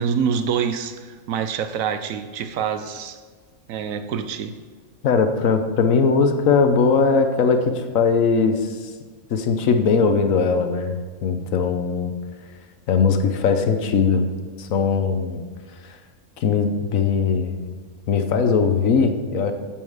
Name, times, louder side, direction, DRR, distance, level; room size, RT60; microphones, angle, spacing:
voice 1, 0.0-3.2 3.7-4.6, right 7 dB, 75° right, 10 dB, 1.0 m, -26 dB
voice 2, 5.0-8.5 9.3-12.1 12.9-14.3 14.6-15.4 16.4-17.7 18.1-19.5, left 5 dB, 70° left, 7 dB, 1.2 m, -20 dB
8.7 x 7.3 x 4.8 m, 1.5 s
omnidirectional pair, 1.5 m